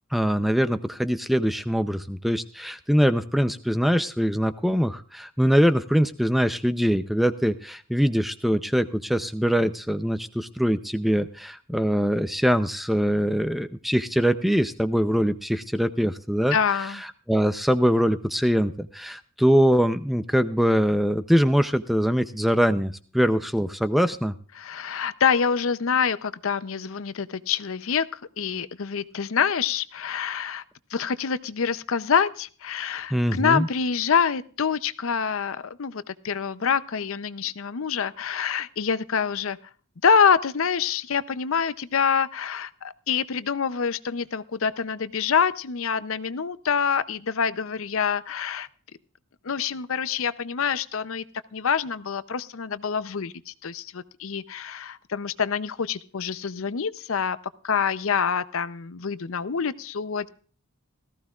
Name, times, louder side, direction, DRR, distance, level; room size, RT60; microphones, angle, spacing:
voice 1, 0.1-16.6 17.3-24.4 33.1-33.7, equal, ahead, 11 dB, 0.5 m, -23 dB
voice 2, 16.5-17.0 24.6-30.6 30.9-39.6 40.0-48.7 49.4-51.2 51.5-57.4 57.6-60.3, left 6 dB, 60° left, 15 dB, 0.6 m, -26 dB
18.0 x 14.5 x 2.4 m, 0.43 s
head